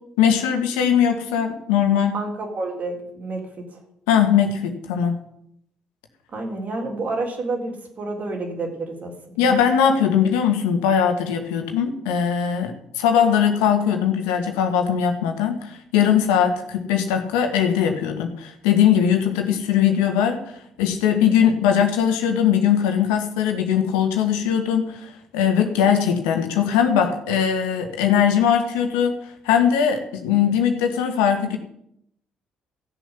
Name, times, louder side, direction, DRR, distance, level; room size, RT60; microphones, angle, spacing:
voice 1, 0.2-2.2 4.1-5.2 9.4-20.4 20.8-29.2 29.4-31.6, left 8 dB, 85° left, 5 dB, 1.7 m, -20 dB
voice 2, 2.1-3.8 6.3-9.6, right 2 dB, 55° right, 2 dB, 3.7 m, -30 dB
15.5 x 7.0 x 7.0 m, 0.75 s
hypercardioid pair, 50°, 3 cm